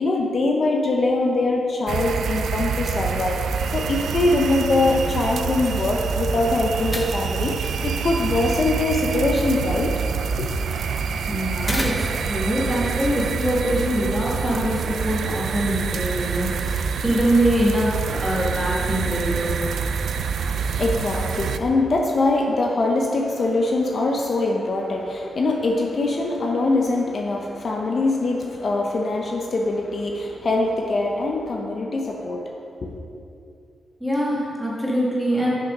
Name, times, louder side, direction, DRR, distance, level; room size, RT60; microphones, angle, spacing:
voice 1, 0.0-3.4 3.7-9.9 10.4-10.5 20.4-32.5 32.8-32.9, left 2 dB, 50° left, 1 dB, 0.7 m, -23 dB
sound 1, 1.9-21.6, right 6 dB, 90° right, 0.3 m, -26 dB
sound 2, 5.4-12.4, left 1 dB, 15° left, 0.9 m, -37 dB
voice 2, 11.3-19.6 34.0-35.5, equal, 5° right, -6 dB, 2.0 m, -24 dB
6.4 x 6.1 x 5.3 m, 2.5 s
wide cardioid pair, 115°, 0 cm